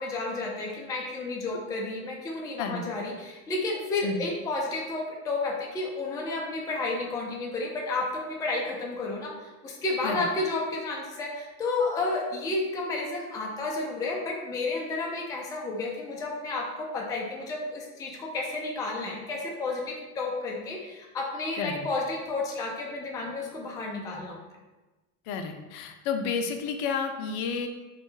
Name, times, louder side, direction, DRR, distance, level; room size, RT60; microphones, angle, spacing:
voice 1, 0.0-24.4, left 3 dB, 10° left, -1 dB, 0.3 m, -31 dB
voice 2, 25.3-27.7, left 5 dB, 60° left, 6 dB, 0.5 m, -31 dB
3.1 x 2.3 x 3.1 m, 1.1 s
hypercardioid pair, 90°, 43 cm